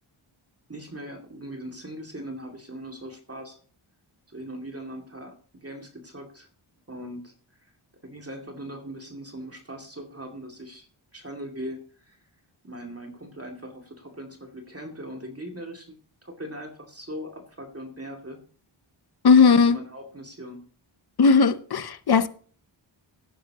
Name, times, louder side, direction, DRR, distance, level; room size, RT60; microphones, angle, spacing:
voice 1, 0.7-3.6 4.3-6.5 6.9-7.3 7.6-7.7 8.0-10.9 11.1-12.2 12.6-18.4 19.4-20.7, equal, 30° right, 2.5 m, -40 dB
voice 2, 19.2-19.8 21.2-22.3, left 5 dB, 50° left, 0.8 m, -17 dB
17.5 x 10.0 x 2.9 m
wide cardioid pair, 65°, 48 cm